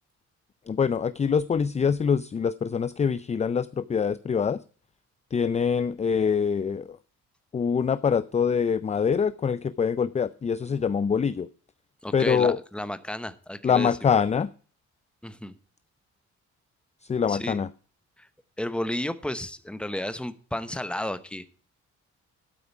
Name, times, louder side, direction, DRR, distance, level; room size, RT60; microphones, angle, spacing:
voice 1, 0.7-4.6 5.3-7.0 7.5-11.5 12.1-12.6 13.6-14.5 17.1-17.7, left 6 dB, 25° left, 16 dB, 0.4 m, -24 dB
voice 2, 12.0-14.1 15.2-15.6 17.3-17.6 18.2-18.3 18.6-21.5, left 1 dB, 5° left, 12 dB, 1.0 m, -32 dB
12.5 x 5.0 x 7.0 m, 0.41 s
cardioid pair, 90°, 30 cm